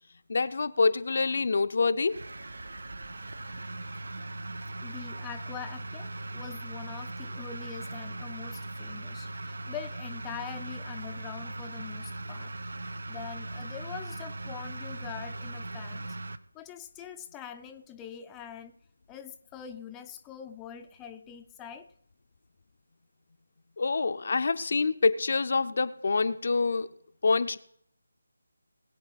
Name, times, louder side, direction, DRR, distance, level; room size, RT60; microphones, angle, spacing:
voice 1, 0.3-2.2 23.8-26.9 27.2-27.6, left 4 dB, 50° left, 11 dB, 0.7 m, -26 dB
sound 1, 2.1-16.4, right 2 dB, 65° right, 0.9 m, -39 dB
voice 2, 4.8-12.5 13.1-16.2 16.5-18.7 19.1-21.9, left 9 dB, 10° left, 5 dB, 0.6 m, -44 dB
20.0 x 8.5 x 4.1 m, 0.66 s
figure-of-eight pair, 160°, 0 cm